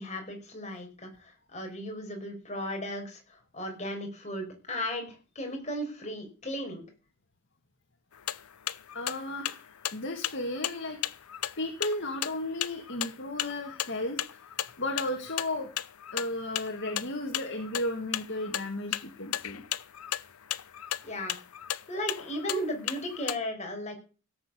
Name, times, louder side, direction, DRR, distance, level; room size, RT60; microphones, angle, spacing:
voice 1, 0.0-6.8 21.0-21.3 21.9-24.0, equal, 30° left, 3 dB, 5.0 m, -36 dB
sound 1, 8.1-23.4, left 12 dB, 85° left, 0.7 m, -35 dB
voice 2, 8.9-11.0 11.6-14.4 14.8-15.7 16.1-19.6, left 1 dB, 55° left, 3 dB, 2.1 m, -34 dB
16.5 x 7.9 x 6.9 m, 0.36 s
head